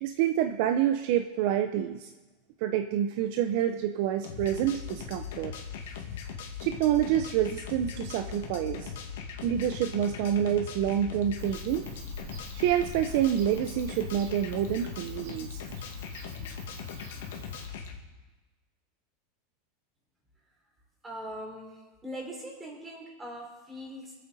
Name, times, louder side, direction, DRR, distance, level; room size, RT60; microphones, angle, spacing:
voice 1, 0.0-2.1 2.6-5.5 6.6-8.9 9.4-11.9 12.6-15.6, right 10 dB, 50° right, 7 dB, 0.6 m, -27 dB
sound 1, 4.2-18.0, left 6 dB, 85° left, 2.0 m, -39 dB
Bird / Cricket, 11.4-17.6, right 3 dB, 65° right, 3.2 m, -48 dB
voice 2, 21.0-24.1, equal, 10° right, -2 dB, 3.5 m, -41 dB
24.0 x 8.4 x 4.2 m, 1.2 s
supercardioid pair, 165°, 0 cm